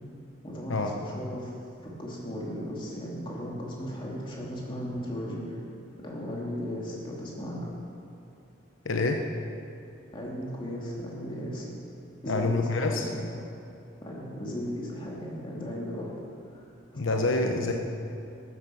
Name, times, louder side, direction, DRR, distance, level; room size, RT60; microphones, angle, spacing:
voice 1, 0.4-1.5 1.8-5.6 6.0-7.7 10.1-11.7 12.2-13.2 14.0-16.1 16.5-16.6 17.4-17.6, equal, 25° left, -4 dB, 2.5 m, -36 dB
voice 2, 8.8-9.2 12.3-13.1 16.9-17.7, left 2 dB, 80° left, 3 dB, 0.9 m, -26 dB
13.5 x 9.8 x 6.2 m, 2.6 s
head